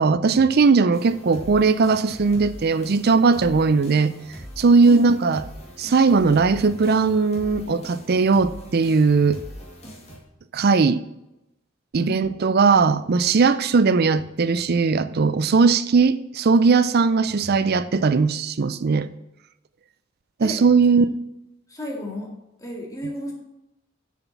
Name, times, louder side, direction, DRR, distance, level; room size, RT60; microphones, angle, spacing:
voice 1, 0.0-4.1 4.6-5.4 5.8-9.4 10.5-11.0 11.9-19.1 20.4-21.0, right 4 dB, 55° right, 0.5 m, -18 dB
sound 1, 0.9-10.2, equal, 35° left, 2.3 m, -42 dB
voice 2, 21.7-22.3 22.6-23.3, left 1 dB, 15° left, 2.1 m, -32 dB
7.2 x 6.1 x 6.9 m
head